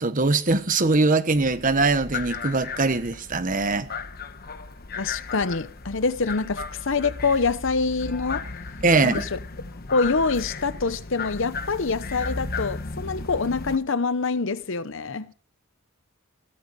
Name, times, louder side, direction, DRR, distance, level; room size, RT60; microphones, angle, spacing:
voice 1, 0.0-3.9 8.8-9.2, right 3 dB, 40° right, 1.2 m, -22 dB
sound 1, 1.3-13.8, left 4 dB, 45° left, 1.1 m, -35 dB
voice 2, 5.0-8.4 9.0-9.4 9.9-15.3, left 4 dB, 65° left, 0.8 m, -25 dB
17.0 x 13.5 x 4.2 m
head